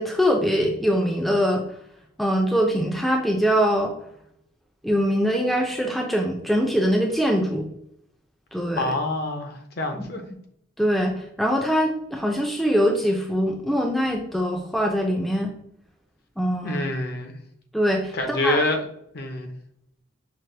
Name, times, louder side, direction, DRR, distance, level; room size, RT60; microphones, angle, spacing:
voice 1, 0.0-1.6 2.2-3.9 4.8-7.7 8.5-8.9 10.8-15.5 16.4-16.8 17.7-18.1 18.4-18.6, equal, ahead, 0 dB, 0.4 m, -23 dB
voice 2, 8.7-10.2 16.6-17.4 18.1-18.8 19.1-19.5, left 2 dB, 50° left, 5 dB, 0.6 m, -26 dB
5.9 x 2.1 x 3.2 m, 0.71 s
head